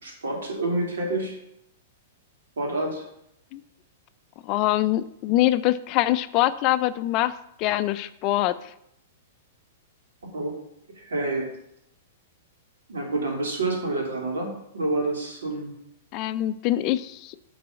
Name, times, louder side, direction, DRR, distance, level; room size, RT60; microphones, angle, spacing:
voice 1, 0.0-1.4 2.6-3.0 10.3-10.5 10.9-11.5 12.9-15.7, right 2 dB, 80° right, 0 dB, 2.6 m, -28 dB
voice 2, 4.4-8.7 16.1-17.4, left 15 dB, 40° left, 14 dB, 0.4 m, -24 dB
7.4 x 4.0 x 5.7 m, 0.77 s
hypercardioid pair, 120°, 0 cm